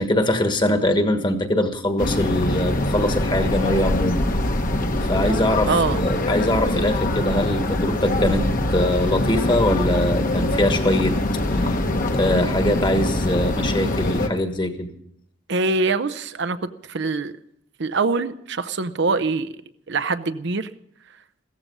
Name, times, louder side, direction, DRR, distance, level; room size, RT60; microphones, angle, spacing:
voice 1, 0.0-4.2 5.0-5.7 6.0-11.2 11.6-11.7 12.1-14.9, left 1 dB, 25° left, 7 dB, 1.4 m, -22 dB
sound 1, 2.0-14.3, left 1 dB, 45° left, 1.2 m, -23 dB
voice 2, 5.7-6.0 15.5-17.4 17.8-19.5 19.9-20.7, right 3 dB, 60° right, 10 dB, 0.7 m, -24 dB
16.0 x 14.5 x 5.4 m, 0.71 s
head